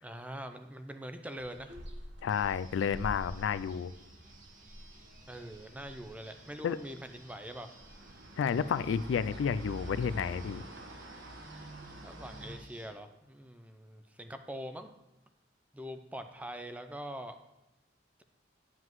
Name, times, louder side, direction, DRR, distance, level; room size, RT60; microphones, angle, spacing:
voice 1, 0.0-1.8 5.3-7.7 12.0-14.9 15.7-17.4, equal, 10° right, 7 dB, 0.5 m, -43 dB
sound 1, 1.4-12.6, right 1 dB, 65° right, 1.2 m, -47 dB
voice 2, 2.2-3.9 6.6-6.8 8.4-10.6, left 7 dB, 90° left, 16 dB, 0.3 m, -31 dB
sound 2, 2.3-13.0, right 2 dB, 45° right, 1.7 m, -59 dB
9.6 x 7.6 x 3.1 m, 0.98 s
head